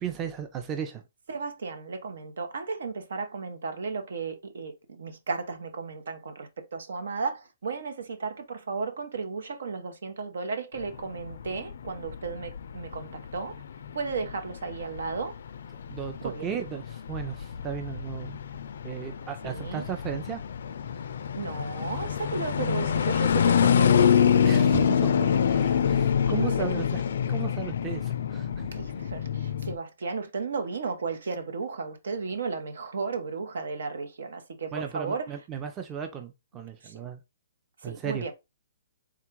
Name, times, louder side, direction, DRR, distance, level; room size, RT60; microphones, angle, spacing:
voice 1, 0.0-1.0 15.9-18.4 18.8-20.4 24.4-28.7 34.7-37.2 37.8-38.3, right 8 dB, 20° right, 0.6 m, -35 dB
voice 2, 1.3-13.6 13.9-15.4 16.2-16.6 19.4-19.9 21.4-25.0 26.2-26.5 28.7-35.3 36.8-37.0 37.8-38.3, right 4 dB, 75° right, 1.0 m, -34 dB
sound 1, 10.8-29.8, left 8 dB, 65° left, 0.4 m, -26 dB
3.7 x 2.4 x 4.5 m
hypercardioid pair, 145°, 0 cm